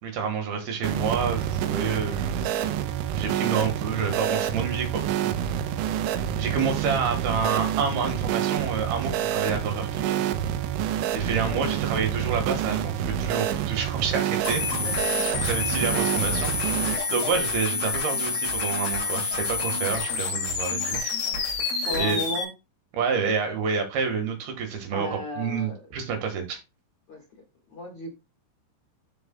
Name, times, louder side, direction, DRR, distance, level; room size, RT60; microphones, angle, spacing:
voice 1, 0.0-2.6 3.2-5.1 6.4-10.2 11.1-14.6 15.0-16.5 16.8-21.5 22.0-22.2 22.9-26.6, right 6 dB, 60° right, 3.1 m, -28 dB
sound 1, 0.8-17.0, right 10 dB, 80° right, 2.9 m, -28 dB
sound 2, 14.4-22.4, left 4 dB, 55° left, 4.3 m, -28 dB
voice 2, 14.8-15.5 21.8-22.5 24.9-25.8 27.1-27.2 27.7-28.1, left 1 dB, 70° left, 1.3 m, -35 dB
14.0 x 5.2 x 2.3 m
omnidirectional pair, 5.6 m